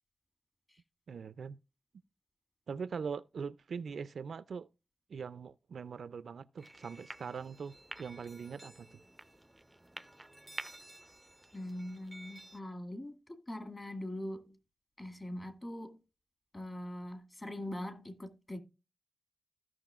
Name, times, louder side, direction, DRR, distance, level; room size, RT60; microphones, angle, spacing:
voice 1, 1.1-1.6 2.7-4.7 5.1-9.0, right 6 dB, 80° right, 0.4 m, -42 dB
Chinese stress balls, 6.6-12.6, right 1 dB, 10° right, 0.4 m, -50 dB
voice 2, 11.5-14.6 15.0-16.0 16.5-18.6, left 1 dB, 30° left, 1.9 m, -42 dB
15.5 x 6.0 x 2.3 m
cardioid pair, 75°, 0 cm